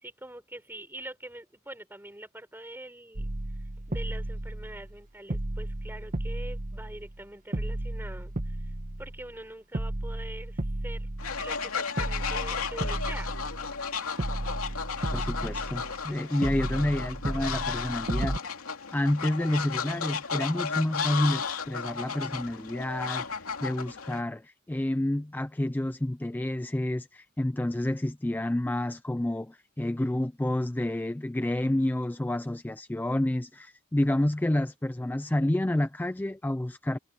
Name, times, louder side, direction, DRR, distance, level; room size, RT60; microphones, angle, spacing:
voice 1, 0.0-3.3 3.9-8.6 9.0-11.1 11.4-13.4, right 1 dB, 10° right, 6.0 m, -44 dB
sound 1, 3.2-5.0 5.3-7.2 7.5-9.4 9.7-11.7 12.0-13.9 14.2-16.1 16.4-18.4, right 1 dB, 40° right, 1.3 m, -34 dB
Fowl, 11.2-24.2, left 6 dB, 85° left, 2.6 m, -34 dB
voice 2, 15.1-18.4 18.9-37.0, left 1 dB, 10° left, 0.3 m, -29 dB
head